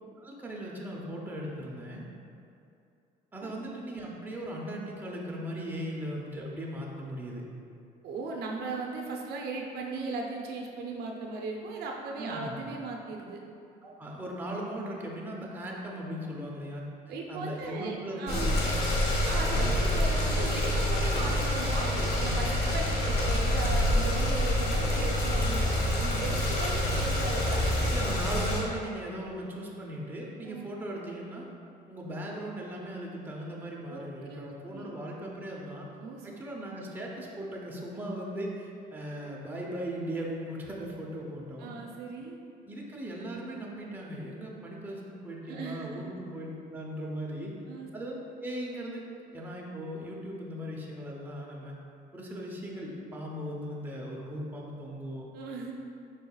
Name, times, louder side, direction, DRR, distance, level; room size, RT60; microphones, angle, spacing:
voice 1, 0.2-2.0 3.3-7.4 12.2-12.6 13.8-16.8 17.3-19.0 27.9-31.5 31.9-35.9 36.2-41.7 42.6-47.5 47.9-49.0 49.3-51.7 52.1-55.3, right 1 dB, 10° right, -3 dB, 0.7 m, -38 dB
voice 2, 8.0-13.4 17.1-18.5 19.3-28.0 30.5-30.7 33.9-34.9 36.0-36.4 41.6-42.4 45.4-46.1 47.7-47.9 55.3-55.7, right 3 dB, 70° right, 0 dB, 0.6 m, -38 dB
sound 1, 18.3-28.6, left 1 dB, 70° left, 1.0 m, -27 dB
5.3 x 4.0 x 2.3 m, 2.6 s
cardioid pair, 110°, 17 cm